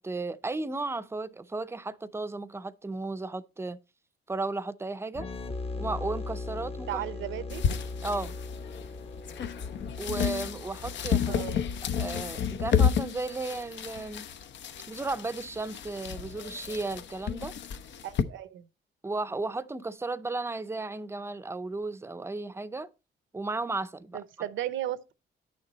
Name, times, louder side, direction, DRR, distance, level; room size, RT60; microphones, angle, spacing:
voice 1, 0.0-3.8 4.3-5.3 5.8-7.0 8.0-8.3 10.0-11.4 11.9-14.3 14.9-17.5 19.0-22.9 23.3-24.2, right 3 dB, 15° right, 0.6 m, -34 dB
sound 1, 5.1-12.7, left 3 dB, 30° left, 0.9 m, -39 dB
voice 2, 6.9-7.6 11.3-11.7 18.0-18.7 24.1-25.1, right 12 dB, 80° right, 0.7 m, -35 dB
sound 2, 7.5-18.2, left 7 dB, 65° left, 0.8 m, -31 dB
9.3 x 6.7 x 4.0 m
cardioid pair, 90°, 20 cm